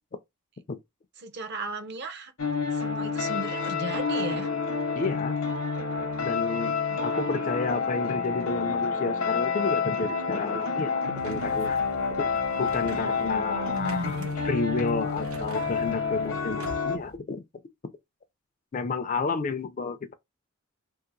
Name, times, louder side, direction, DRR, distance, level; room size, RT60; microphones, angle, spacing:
voice 1, 1.2-2.3 2.7-4.5 6.9-7.0 12.9-14.3, right 1 dB, 50° right, 0.6 m, -36 dB
sound 1, 2.4-17.0, left 5 dB, 65° left, 0.7 m, -29 dB
voice 2, 5.0-5.4 6.2-6.8 7.0-11.8 12.2-12.3 12.6-17.4 18.7-20.1, left 4 dB, 35° left, 0.4 m, -31 dB
sound 2, 11.2-17.2, right 1 dB, 80° right, 1.0 m, -45 dB
2.8 x 2.5 x 3.8 m
head